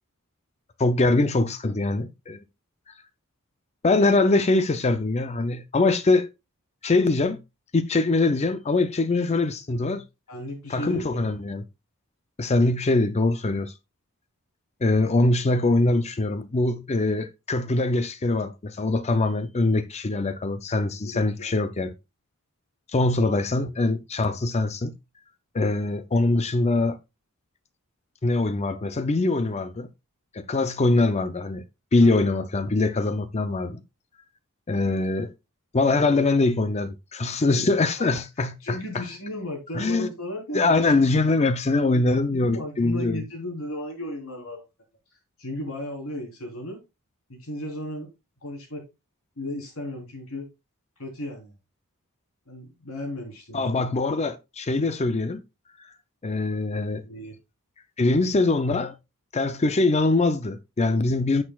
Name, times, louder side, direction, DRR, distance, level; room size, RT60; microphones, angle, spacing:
voice 1, 0.8-2.4 3.8-6.3 6.8-7.4 7.7-10.0 10.7-11.6 12.4-13.7 14.8-21.9 22.9-24.9 25.5-27.0 28.2-29.9 30.3-31.6 31.9-33.8 34.7-35.3 35.7-38.8 39.7-40.1 40.5-43.2 53.5-55.4 56.2-57.0 58.0-58.9 59.3-61.4, left 2 dB, 30° left, 0.5 m, -23 dB
voice 2, 10.3-11.3 20.7-21.5 32.0-32.2 38.6-40.9 41.9-44.6 45.4-46.8 47.3-48.1 48.4-48.9 49.4-50.5 51.0-51.5 52.5-53.9 57.0-57.4, left 1 dB, 75° left, 3.7 m, -35 dB
10.0 x 6.5 x 2.3 m
head